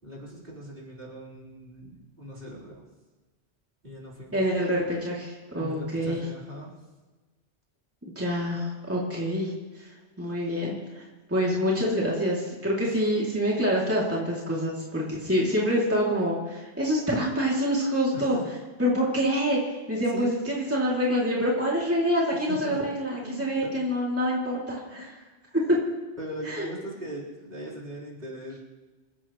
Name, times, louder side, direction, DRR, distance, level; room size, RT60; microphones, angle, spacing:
voice 1, 0.0-2.8 3.8-4.4 5.5-6.7 18.1-18.5 20.1-20.3 22.5-22.8 23.2-23.8 26.2-28.6, right 1 dB, 45° right, -6 dB, 4.4 m, -39 dB
voice 2, 4.3-6.2 8.1-9.9 10.2-18.4 18.8-25.2 25.7-25.8 26.5-26.7, equal, 10° right, -5 dB, 2.9 m, -26 dB
27.0 x 15.5 x 3.2 m, 1.2 s
omnidirectional pair, 1.2 m